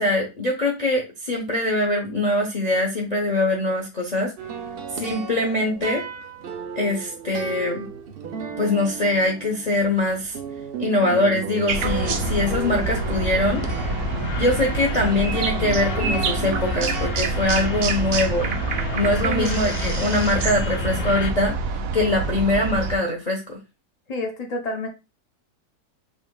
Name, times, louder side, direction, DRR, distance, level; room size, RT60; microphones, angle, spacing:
voice 1, 0.0-4.3 4.9-6.0 6.7-7.9 8.6-10.4 10.8-13.7 14.4-18.6 18.9-23.6, left 1 dB, 35° left, -1 dB, 0.7 m, -23 dB
sound 1, 4.4-17.1, right 6 dB, 85° right, 0.5 m, -34 dB
sound 2, 11.7-21.3, left 4 dB, 60° left, 0.9 m, -31 dB
sound 3, 11.7-23.0, right 4 dB, 65° right, 0.9 m, -27 dB
voice 2, 24.1-24.9, left 2 dB, 75° left, 2 dB, 0.3 m, -29 dB
5.4 x 3.4 x 2.2 m, 0.27 s
omnidirectional pair, 1.8 m